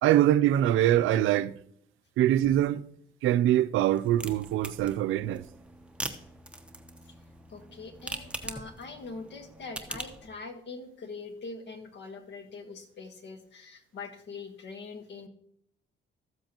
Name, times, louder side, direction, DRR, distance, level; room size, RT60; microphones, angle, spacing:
voice 1, 0.0-1.5 2.2-2.8 3.2-5.5, right 12 dB, 85° right, 0.5 m, -23 dB
sound 1, 3.8-10.3, right 1 dB, 5° right, 0.9 m, -42 dB
voice 2, 7.5-15.3, left 4 dB, 60° left, 1.5 m, -43 dB
14.0 x 7.6 x 3.0 m
cardioid pair, 90°, 20 cm